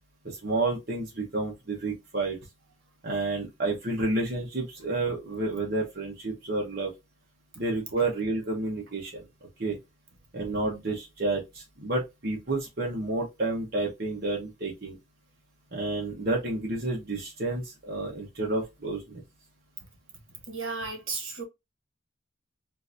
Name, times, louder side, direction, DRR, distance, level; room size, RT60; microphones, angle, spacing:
voice 1, 0.2-2.4 3.0-6.9 7.5-9.2 9.6-9.8 10.3-15.0 15.7-19.2, right 2 dB, 50° right, 1.0 m, -30 dB
voice 2, 20.5-21.4, right 4 dB, 85° right, 1.1 m, -34 dB
3.8 x 2.6 x 2.5 m
head